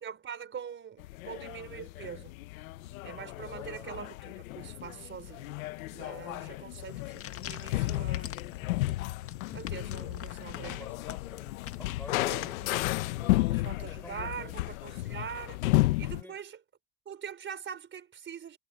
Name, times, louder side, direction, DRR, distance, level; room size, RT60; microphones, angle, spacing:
voice 1, 0.0-2.3 3.0-5.6 5.9-8.5 9.5-10.9 12.2-12.8 13.4-15.6 16.0-16.6 17.1-18.6, right 7 dB, 30° right, 4.4 m, -43 dB
sound 1, 1.0-16.2, left 18 dB, 85° left, 1.3 m, -33 dB
voice 2, 3.5-3.9 10.4-14.6 16.1-16.4, left 1 dB, 5° left, 4.3 m, -51 dB
sound 2, 6.9-13.4, left 11 dB, 35° left, 1.8 m, -46 dB
supercardioid pair, 120°, 40 cm